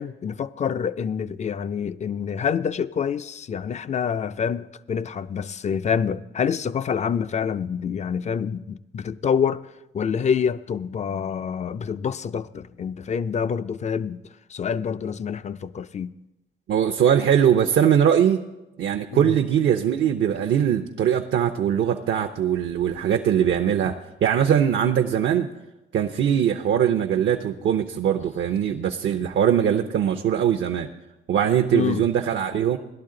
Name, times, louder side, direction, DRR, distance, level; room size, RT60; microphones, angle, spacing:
voice 1, 0.0-9.7 9.9-14.2 14.5-16.1 19.1-19.3 31.7-32.1, left 7 dB, 35° left, 0.4 m, -27 dB
voice 2, 16.7-18.4 18.8-25.5 25.9-30.9 31.3-32.8, right 9 dB, 65° right, 0.7 m, -21 dB
17.5 x 11.5 x 3.8 m
cardioid pair, 90°, 20 cm